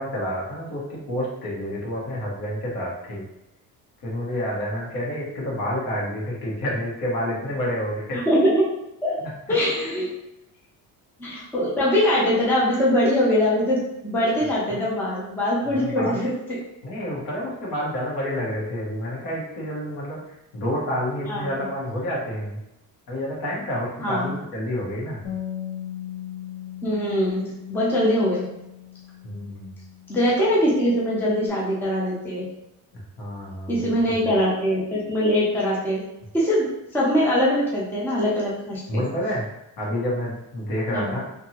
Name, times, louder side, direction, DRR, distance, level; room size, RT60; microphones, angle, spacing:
voice 1, 0.0-3.2 4.0-8.2 9.2-9.3 9.8-10.0 14.7-14.8 15.7-16.2 16.8-20.2 20.5-22.6 23.1-25.3 29.2-29.7 33.2-34.3 38.9-39.4 39.8-41.2, equal, 80° left, -4 dB, 1.3 m, -29 dB
voice 2, 8.1-8.7 9.0-9.2 9.5-10.1 11.2-16.6 21.3-21.5 24.0-24.3 26.8-28.4 30.1-32.4 33.7-36.0 36.3-39.0 40.9-41.1, equal, 5° left, -6 dB, 0.4 m, -22 dB
Bass guitar, 25.2-31.5, left 10 dB, 60° left, 1.0 m, -38 dB
2.8 x 2.6 x 2.8 m, 0.87 s
cardioid pair, 180°, 37 cm